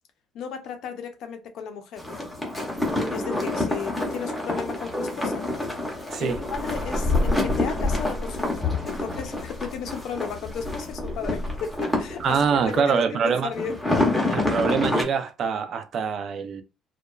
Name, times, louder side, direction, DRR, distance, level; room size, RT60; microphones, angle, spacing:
voice 1, 0.3-2.0 3.1-5.4 6.2-14.5, left 6 dB, 55° left, 0.5 m, -35 dB
sound 1, 2.0-12.8 13.5-15.0, left 2 dB, ahead, 0.7 m, -27 dB
voice 2, 12.2-13.5 14.3-16.6, right 6 dB, 40° right, 0.4 m, -24 dB
2.8 x 2.2 x 2.3 m
cardioid pair, 175°, 0 cm